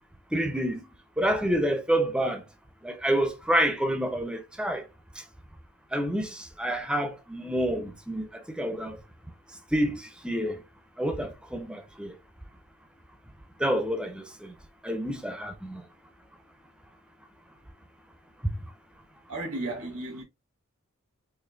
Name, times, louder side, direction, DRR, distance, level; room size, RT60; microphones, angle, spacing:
voice 1, 0.3-0.9 1.2-2.4 2.8-4.8 5.9-8.3 8.6-9.0 9.7-10.6 11.0-12.1 13.6-14.5 14.8-15.8, right 1 dB, 5° right, 0.5 m, -28 dB
voice 2, 19.3-20.2, right 2 dB, 90° right, 1.6 m, -34 dB
4.3 x 2.7 x 2.6 m
head